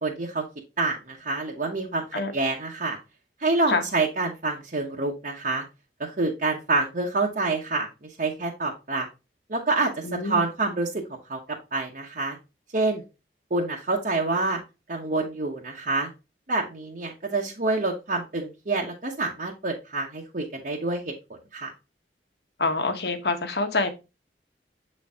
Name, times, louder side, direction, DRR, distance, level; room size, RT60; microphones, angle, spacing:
voice 1, 0.0-0.4 0.8-3.0 3.4-5.6 6.0-7.9 8.2-9.1 9.5-9.9 10.2-10.9 11.3-11.4 11.7-12.4 12.7-13.0 13.5-14.6 14.9-16.1 16.5-21.7, right 3 dB, 50° right, 1.0 m, -27 dB
voice 2, 10.0-10.4 22.6-23.9, left 3 dB, 65° left, 1.1 m, -26 dB
7.2 x 4.3 x 3.6 m
head